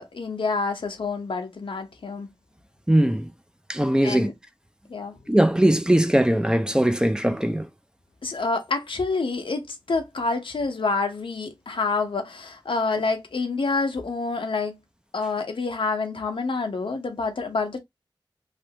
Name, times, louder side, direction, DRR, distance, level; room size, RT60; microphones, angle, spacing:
voice 1, 0.0-2.3 4.0-4.3 4.9-5.1 8.2-14.7 15.1-17.8, left 3 dB, 90° left, 0.8 m, -27 dB
voice 2, 2.9-3.3 3.7-4.3 5.3-7.7, right 1 dB, 10° right, 0.5 m, -20 dB
3.3 x 2.5 x 2.8 m
wide cardioid pair, 65°, 9 cm